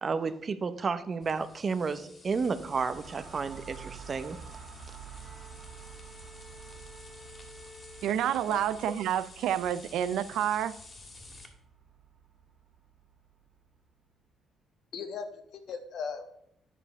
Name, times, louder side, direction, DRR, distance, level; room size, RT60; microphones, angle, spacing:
voice 1, 0.0-4.4, right 5 dB, 40° right, 12 dB, 0.8 m, -32 dB
sound 1, 1.2-11.5, left 3 dB, 40° left, 2.0 m, -52 dB
sound 2, 2.2-13.9, right 6 dB, 60° right, 1.4 m, -50 dB
Bowed string instrument, 5.0-9.5, left 3 dB, 15° left, 1.7 m, -54 dB
voice 2, 8.0-10.7, right 10 dB, 85° right, 15 dB, 0.4 m, -29 dB
voice 3, 14.9-16.3, left 5 dB, 70° left, 8 dB, 1.2 m, -38 dB
10.0 x 5.0 x 5.4 m, 0.74 s
cardioid pair, 90°, 0 cm